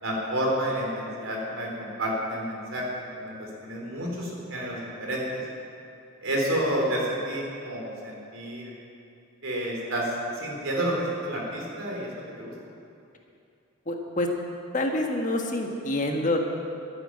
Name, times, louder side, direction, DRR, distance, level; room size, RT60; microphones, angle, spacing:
voice 1, 0.0-5.4 6.2-8.7 9.4-12.5, right 1 dB, 70° right, -2 dB, 3.8 m, -30 dB
voice 2, 13.9-14.3 14.7-16.4, left 1 dB, 35° left, 2 dB, 1.4 m, -27 dB
13.0 x 9.1 x 10.0 m, 2.6 s
head